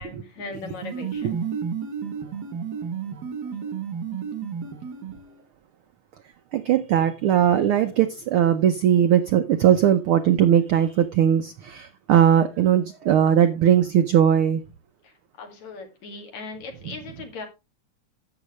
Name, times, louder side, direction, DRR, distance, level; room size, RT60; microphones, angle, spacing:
voice 1, 0.0-1.4 15.0-15.1 15.4-17.5, left 4 dB, 75° left, 3.4 m, -38 dB
sound 1, 0.5-5.4, right 7 dB, 55° right, 1.1 m, -32 dB
voice 2, 6.5-14.6, right 9 dB, 80° right, 1.2 m, -19 dB
12.0 x 8.2 x 3.1 m
omnidirectional pair, 3.3 m